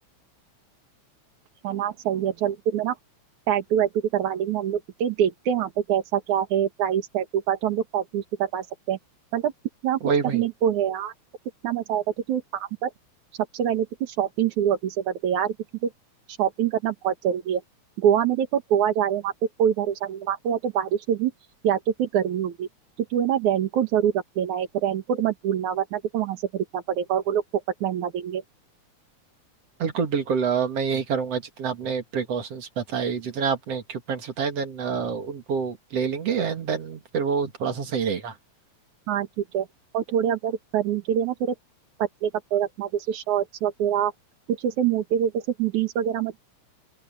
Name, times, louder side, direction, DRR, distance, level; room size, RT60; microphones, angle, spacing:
voice 1, 1.6-2.9 3.5-9.0 9.3-9.5 9.8-10.0 10.3-11.1 11.6-12.9 13.5-15.5 16.3-17.6 18.0-19.3 19.6-21.3 21.6-22.7 23.0-27.4 27.8-28.4 39.1-39.3 39.5-39.7 39.9-41.5 42.2-44.1 44.5-46.4, right 9 dB, 80° right, 3.1 m, -25 dB
voice 2, 10.0-10.4 29.8-38.3, right 6 dB, 55° right, 2.9 m, -27 dB
open air
omnidirectional pair, 3.4 m